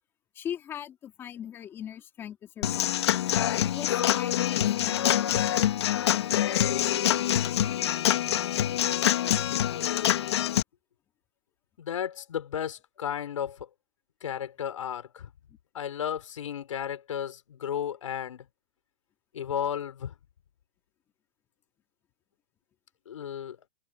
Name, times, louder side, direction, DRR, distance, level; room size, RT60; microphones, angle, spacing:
voice 1, 0.3-3.0 3.6-5.5 15.5-15.6, left 10 dB, 15° left, 4.7 m, -40 dB
Human voice / Acoustic guitar / Drum, 2.6-10.6, left 11 dB, 60° left, 2.0 m, -25 dB
voice 2, 11.8-13.7 14.2-15.3 15.7-18.5 19.3-20.1 23.1-23.6, left 9 dB, 85° left, 6.2 m, -33 dB
hypercardioid pair, 175°, 16 cm